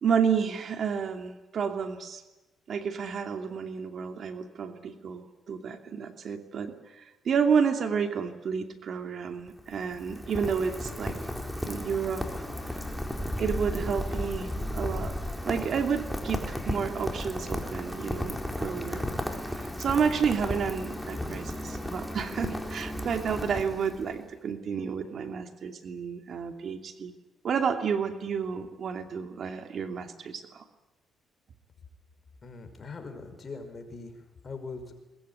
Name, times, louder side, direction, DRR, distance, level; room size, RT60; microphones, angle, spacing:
voice 1, 0.0-2.2 2.7-11.2 11.6-12.2 12.7-12.8 13.4-15.1 15.4-19.0 19.5-27.1 27.4-30.6, right 6 dB, 55° right, 6 dB, 2.7 m, -30 dB
Rain, 9.4-24.2, left 1 dB, 5° left, 4.2 m, -34 dB
voice 2, 32.4-35.0, left 4 dB, 35° left, 7 dB, 5.5 m, -41 dB
21.5 x 21.0 x 9.7 m, 1.1 s
cardioid pair, 90°, 0 cm